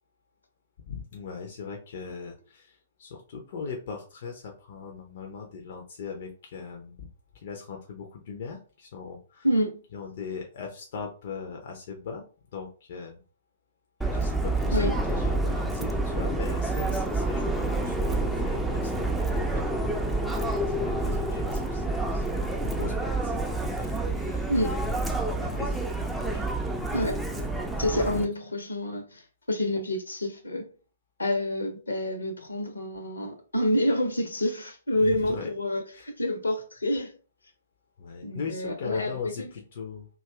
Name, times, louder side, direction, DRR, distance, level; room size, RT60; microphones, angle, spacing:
voice 1, 0.9-7.1 7.3-9.5 9.9-12.2 12.5-13.2 14.1-20.0 20.4-25.0 25.4-26.7 35.0-35.5 35.9-36.1 38.0-40.1, left 5 dB, 45° left, 0.5 m, -40 dB
voice 2, 9.4-9.8 14.7-15.0 24.5-24.7 26.9-27.2 27.8-29.2 29.5-30.6 31.2-37.1 38.2-39.5, left 1 dB, 75° left, 0.8 m, -28 dB
Subway metro underground, 14.0-28.3, right 2 dB, 5° right, 0.4 m, -28 dB
2.6 x 2.4 x 3.3 m
figure-of-eight pair, 115°, 0 cm